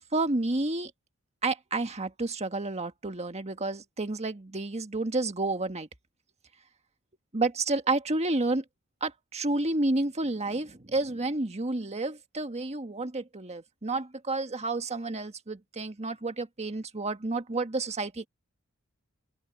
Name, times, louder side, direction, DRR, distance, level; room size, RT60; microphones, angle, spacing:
voice 1, 0.1-0.9 1.4-5.9 7.3-8.6 9.0-18.2, right 2 dB, 30° right, 1.6 m, -30 dB
open air
head